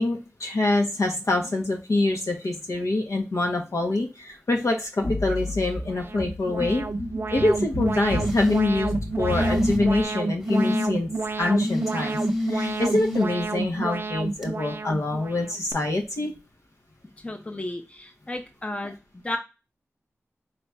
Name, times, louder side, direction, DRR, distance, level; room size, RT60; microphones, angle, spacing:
voice 1, 0.0-6.9 7.3-8.9 9.2-11.1 11.4-12.2 12.5-16.3, left 2 dB, 80° left, 1 dB, 1.0 m, -25 dB
sound 1, 5.0-10.0, left 1 dB, 65° left, 1.5 m, -32 dB
Alarm, 5.8-15.7, right 3 dB, 45° right, 0.4 m, -30 dB
sound 2, 8.1-8.6 9.3-10.0 10.4-10.9 11.6-13.2 14.4-14.5, left 1 dB, 5° right, 1.1 m, -28 dB
voice 2, 17.2-19.4, left 1 dB, 25° left, 5 dB, 0.7 m, -33 dB
4.1 x 2.6 x 3.3 m, 0.28 s
wide cardioid pair, 50°, 5 cm